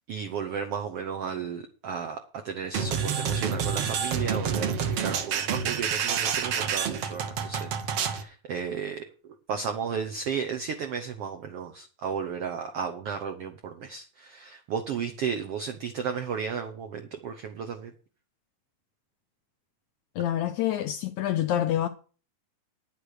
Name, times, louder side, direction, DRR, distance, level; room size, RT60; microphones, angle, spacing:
voice 1, 0.1-17.9, right 6 dB, 75° right, 1.3 m, -34 dB
sound 1, 2.7-8.2, right 7 dB, 60° right, 1.7 m, -28 dB
voice 2, 20.2-21.9, left 11 dB, 80° left, 1.7 m, -27 dB
10.0 x 8.2 x 6.5 m
omnidirectional pair, 4.0 m